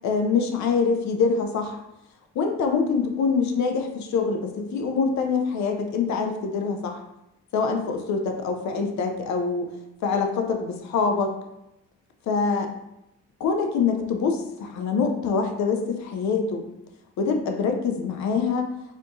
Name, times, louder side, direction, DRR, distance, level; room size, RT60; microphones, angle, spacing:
voice 1, 0.0-1.8 2.3-7.0 7.5-9.7 10.0-11.3 12.3-12.7 13.4-16.6 17.2-18.7, left 5 dB, 65° left, 5 dB, 0.6 m, -25 dB
4.2 x 2.9 x 2.6 m, 0.88 s
cardioid pair, 90°, 30 cm